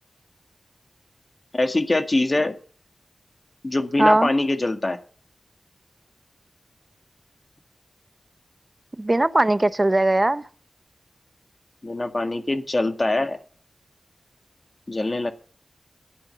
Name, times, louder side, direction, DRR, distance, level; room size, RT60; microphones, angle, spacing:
voice 1, 1.5-2.6 3.6-5.0 11.8-13.4 14.9-15.3, left 2 dB, 35° left, 1.8 m, -23 dB
voice 2, 4.0-4.3 9.0-10.4, right 2 dB, 30° right, 0.8 m, -19 dB
11.0 x 8.8 x 6.7 m
wide cardioid pair, 70°, 0 cm